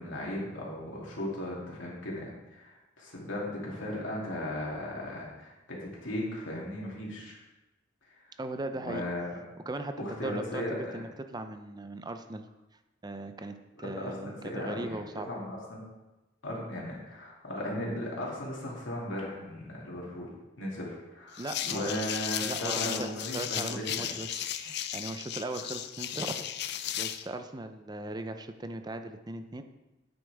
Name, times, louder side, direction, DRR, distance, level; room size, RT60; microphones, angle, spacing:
voice 1, 0.0-7.4 8.2-8.3 8.8-9.4 10.0-11.0 13.7-15.0 15.3-15.8 16.4-20.3 20.6-24.1, left 1 dB, 85° left, -4 dB, 2.7 m, -36 dB
voice 2, 8.4-9.1 9.7-12.5 13.0-15.3 21.4-22.0 22.4-26.4 27.0-29.6, right 2 dB, 20° right, 8 dB, 0.6 m, -38 dB
sound 1, 21.4-27.3, left 11 dB, 60° left, 0.5 m, -35 dB
9.2 x 8.3 x 3.5 m, 1.0 s
head